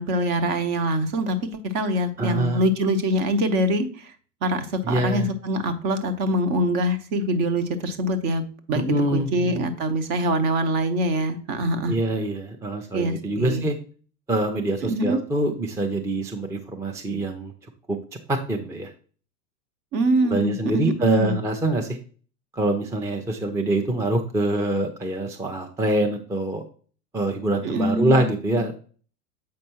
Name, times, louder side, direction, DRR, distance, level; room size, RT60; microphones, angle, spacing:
voice 1, 0.0-1.4 1.6-4.1 4.4-8.8 9.1-11.9 12.9-13.6 14.8-15.2 19.9-21.4 27.6-28.2, right 1 dB, 40° right, 9 dB, 1.1 m, -24 dB
voice 2, 2.2-2.6 4.8-5.3 8.7-9.6 11.9-13.7 14.3-17.5 17.9-18.0 18.3-18.9 20.3-22.0 22.5-26.6 27.1-28.7, right 1 dB, 5° right, 4 dB, 0.5 m, -25 dB
7.6 x 5.3 x 2.9 m, 0.41 s
figure-of-eight pair, 85°, 48 cm